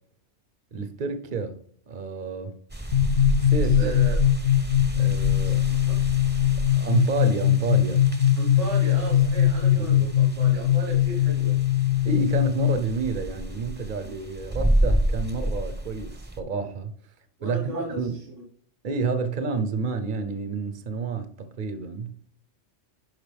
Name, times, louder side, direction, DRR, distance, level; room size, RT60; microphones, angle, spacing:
voice 1, 0.7-2.5 3.4-3.9 5.0-5.6 6.8-8.1 9.8-10.1 12.0-16.9 17.4-18.2 18.8-22.2, right 5 dB, 45° right, 0.9 m, -29 dB
sound 1, 2.7-16.4, right 1 dB, 10° right, 0.9 m, -30 dB
sound 2, 2.9-12.8, left 11 dB, 60° left, 0.7 m, -21 dB
voice 2, 3.6-4.2 5.4-5.8 8.4-11.6 17.4-18.2, right 1 dB, 80° right, 1.8 m, -35 dB
11.0 x 5.3 x 3.4 m
omnidirectional pair, 1.3 m